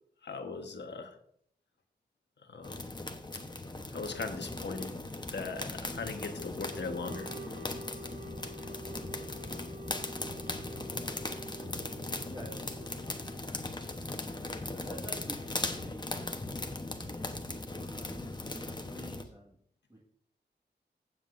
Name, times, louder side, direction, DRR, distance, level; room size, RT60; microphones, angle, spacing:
voice 1, 0.2-1.2 2.5-2.9 3.9-4.9 5.3-7.5, left 4 dB, 85° left, 5 dB, 1.3 m, -39 dB
sound 1, 2.6-19.2, left 2 dB, 25° left, 1.0 m, -39 dB
sound 2, 6.7-13.5, right 1 dB, 45° right, 0.9 m, -48 dB
voice 2, 10.9-11.2 12.3-13.0 14.3-16.4 17.0-17.3 17.7-19.6 19.9-20.0, equal, 25° right, -3 dB, 1.8 m, -49 dB
15.5 x 7.7 x 2.6 m, 0.66 s
wide cardioid pair, 80°, 18 cm